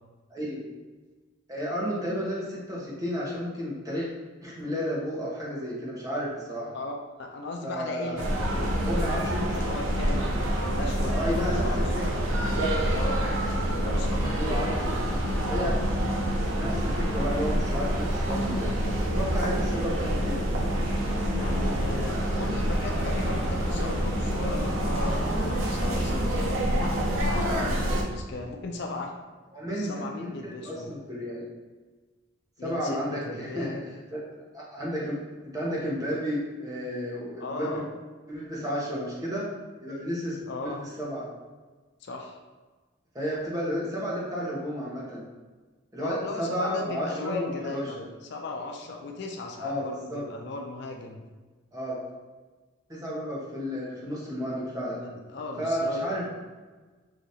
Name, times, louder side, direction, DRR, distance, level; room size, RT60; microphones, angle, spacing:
voice 1, 0.3-0.6 1.5-4.1 4.4-6.7 7.6-8.2 8.8-9.6 11.1-12.2 14.3-15.0 15.5-15.8 16.5-18.7 19.0-20.4 29.5-30.3 30.6-31.5 32.6-33.8 34.1-34.2 34.5-37.8 38.3-39.5 39.8-41.3 43.1-45.2 45.9-48.0 49.6-50.2 51.7-52.0 52.9-55.0 55.6-56.2, equal, 20° right, -6 dB, 1.0 m, -32 dB
voice 2, 6.7-8.3 9.6-12.3 12.9-13.3 13.7-14.8 19.7-20.1 21.3-29.1 29.7-30.9 32.6-33.9 37.4-37.9 40.5-40.8 42.0-42.4 46.0-51.2 54.9-56.2, left 2 dB, 55° left, 2 dB, 0.4 m, -37 dB
sound 1, 8.2-28.0, equal, 80° right, 0.7 m, -27 dB
4.9 x 2.8 x 2.7 m, 1.3 s
head